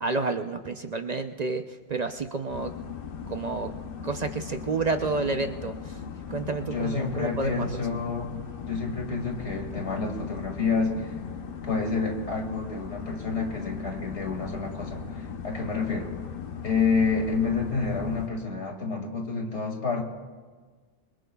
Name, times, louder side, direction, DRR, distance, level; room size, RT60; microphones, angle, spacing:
voice 1, 0.0-2.7 3.3-3.7 4.0-6.0 6.3-7.7, right 3 dB, 45° right, 6 dB, 0.7 m, -30 dB
sound 1, 2.5-18.3, left 6 dB, 55° left, 1.0 m, -38 dB
voice 2, 6.7-8.4 8.7-11.1 11.6-16.1 16.6-20.0, left 4 dB, 80° left, 2 dB, 2.6 m, -29 dB
26.5 x 23.0 x 2.3 m, 1.5 s
omnidirectional pair, 1.1 m